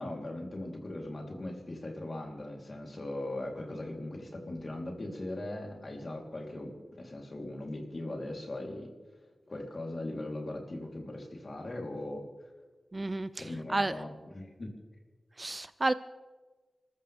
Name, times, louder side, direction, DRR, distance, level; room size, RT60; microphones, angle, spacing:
voice 1, 0.0-8.9 9.5-12.2 13.4-14.7, left 1 dB, 40° left, 0 dB, 3.4 m, -39 dB
voice 2, 12.9-13.9 15.4-15.9, right 2 dB, 25° right, 14 dB, 0.4 m, -31 dB
30.0 x 14.0 x 3.5 m, 1.3 s
wide cardioid pair, 100°, 0 cm